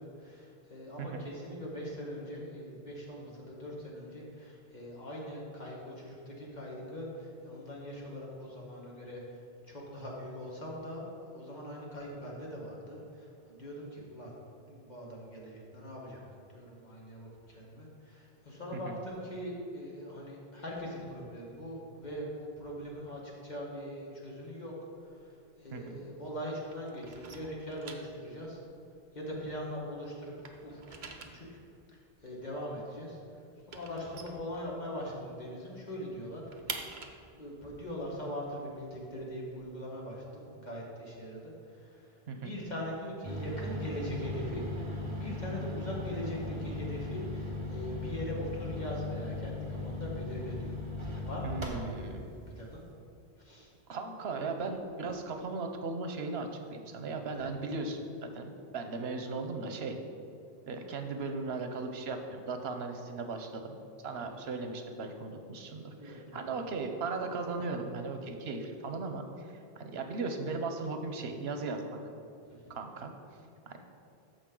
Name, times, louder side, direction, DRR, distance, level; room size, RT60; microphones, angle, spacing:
voice 1, 0.0-9.4 9.7-11.1 11.3-14.3 14.7-16.2 16.5-24.7 25.0-25.3 25.6-28.6 29.1-30.3 30.6-31.6 31.9-36.4 37.4-44.6 44.9-50.8 51.0-52.8 53.4-53.7 57.3-57.4 64.3-64.4 66.0-66.5 72.5-72.8, equal, 45° left, -3 dB, 1.8 m, -41 dB
sound 1, 24.9-26.4 26.7-29.9 30.2-35.2 35.5-35.6 35.9-39.6, right 4 dB, 55° right, 0.8 m, -47 dB
sound 2, 43.2-52.2, left 2 dB, 30° right, 1.1 m, -38 dB
voice 2, 51.4-52.2 53.9-60.0 60.7-63.8 64.0-72.0 72.7-73.1 73.7-73.8, right 3 dB, 85° right, 6 dB, 1.1 m, -37 dB
13.5 x 5.1 x 3.8 m, 2.6 s
omnidirectional pair, 1.0 m